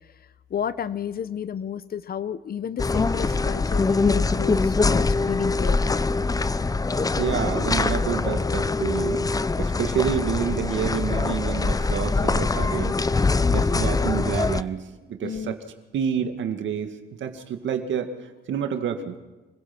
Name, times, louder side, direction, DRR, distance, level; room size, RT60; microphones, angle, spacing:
voice 1, 0.5-5.8 15.2-15.6, left 8 dB, 50° left, 15 dB, 0.9 m, -31 dB
sound 1, 2.8-14.6, left 3 dB, 20° left, 0.6 m, -23 dB
voice 2, 7.2-9.3 9.6-13.0 13.5-15.6 15.9-16.9 17.2-18.1 18.5-19.2, right 8 dB, 70° right, 7 dB, 2.1 m, -28 dB
25.5 x 17.0 x 6.1 m, 1.2 s
cardioid pair, 90°, 20 cm